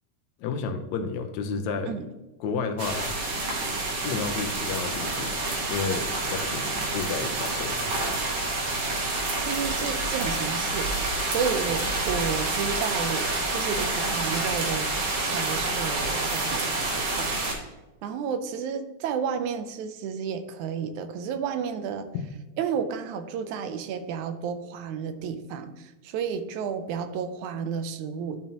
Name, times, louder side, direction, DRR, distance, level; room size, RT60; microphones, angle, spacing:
voice 1, 0.4-2.0 2.4-3.1 4.0-8.0 22.1-22.3, left 5 dB, 75° left, 6 dB, 2.0 m, -31 dB
sound 1, 2.8-17.5, right 2 dB, 65° right, 2.7 m, -28 dB
voice 2, 9.4-10.9 11.2-14.9 15.2-17.7 18.0-22.1 22.6-28.4, right 7 dB, 85° right, 9 dB, 2.1 m, -32 dB
12.0 x 5.4 x 2.9 m, 1.1 s
omnidirectional pair, 3.4 m